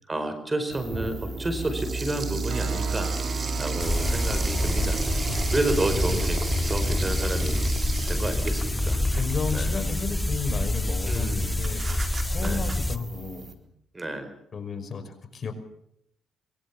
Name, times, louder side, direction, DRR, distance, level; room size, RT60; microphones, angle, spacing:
voice 1, 0.1-3.1 3.6-5.0 5.5-6.4 6.7-7.6 8.0-9.0 9.5-9.7 11.1-11.7 12.4-12.6 13.9-14.3, right 1 dB, 20° right, 10 dB, 4.7 m, -30 dB
sound 1, 0.7-13.5, right 4 dB, 40° right, 3.9 m, -33 dB
sound 2, 2.5-13.7, right 6 dB, 65° right, 3.3 m, -43 dB
sound 3, 3.8-13.0, left 1 dB, 10° left, 1.7 m, -27 dB
voice 2, 5.9-6.2 6.9-7.1 9.1-11.8 12.2-13.5 14.5-15.5, left 5 dB, 45° left, 7 dB, 5.4 m, -33 dB
24.0 x 22.5 x 7.3 m, 0.74 s
cardioid pair, 90°, 0 cm